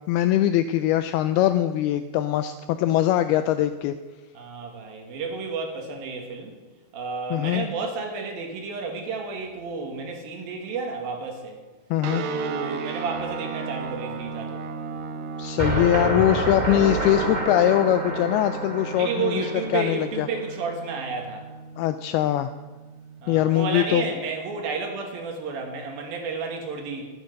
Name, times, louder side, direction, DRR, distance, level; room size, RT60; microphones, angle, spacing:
voice 1, 0.1-4.0 7.3-7.7 11.9-12.2 15.4-19.5 19.7-20.3 21.8-22.5 23.3-24.0, left 12 dB, 85° left, 11 dB, 2.2 m, -22 dB
voice 2, 4.3-6.5 6.9-11.6 12.1-14.6 19.0-21.5 23.2-27.1, right 4 dB, 65° right, 3 dB, 3.3 m, -31 dB
sound 1, 12.0-23.2, right 5 dB, 80° right, 2.9 m, -36 dB
sound 2, 15.6-20.5, right 1 dB, 20° right, 1.4 m, -28 dB
12.5 x 10.0 x 6.5 m, 1.3 s
omnidirectional pair, 4.9 m